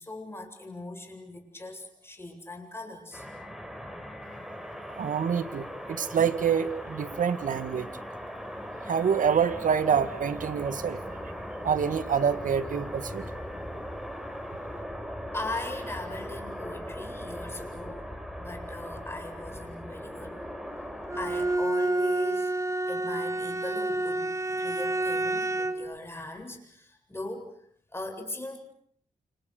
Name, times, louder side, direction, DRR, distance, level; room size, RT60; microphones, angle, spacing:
voice 1, 0.0-3.3 15.3-18.1 18.4-20.4 21.0-22.6 22.9-27.5 27.9-28.6, left 2 dB, 15° left, 5 dB, 7.9 m, -39 dB
sound 1, 3.1-21.6, equal, ahead, 5.5 m, -39 dB
voice 2, 5.0-7.9 8.9-11.0 11.6-13.3, right 7 dB, 75° right, 12 dB, 1.9 m, -26 dB
Bowed string instrument, 21.1-25.9, right 2 dB, 20° right, 1.6 m, -29 dB
29.0 x 28.5 x 6.8 m, 0.66 s
cardioid pair, 75°, 14 cm